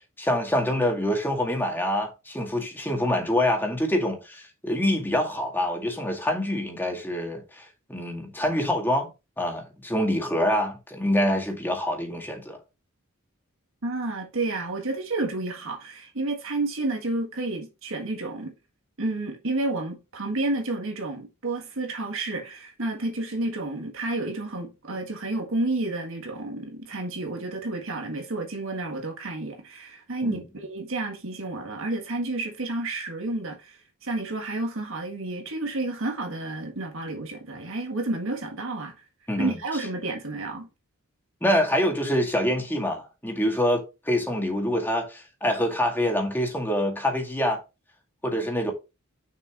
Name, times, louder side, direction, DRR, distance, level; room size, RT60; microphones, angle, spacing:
voice 1, 0.2-9.1 9.4-12.6 30.2-30.4 39.3-39.5 41.4-47.6 48.2-48.7, left 1 dB, 10° left, 2.1 m, -26 dB
voice 2, 13.8-18.5 19.0-38.9 39.4-40.7, right 2 dB, 65° right, 1.7 m, -30 dB
6.7 x 6.1 x 3.0 m
head